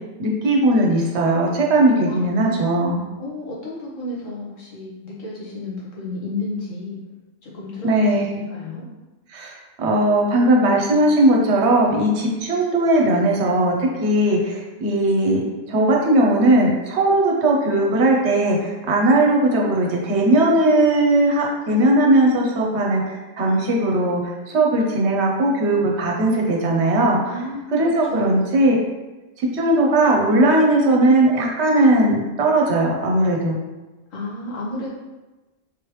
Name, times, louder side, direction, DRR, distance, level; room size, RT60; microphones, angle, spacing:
voice 1, 0.2-3.1 7.8-8.4 9.3-27.2 27.7-28.7 29.4-33.6, right 1 dB, 65° right, -1 dB, 0.9 m, -18 dB
voice 2, 2.1-2.7 3.2-7.0 7.4-8.8 27.2-28.7 34.1-34.9, left 2 dB, 80° left, -6 dB, 1.5 m, -32 dB
3.7 x 3.1 x 3.0 m, 1.1 s
omnidirectional pair, 1.3 m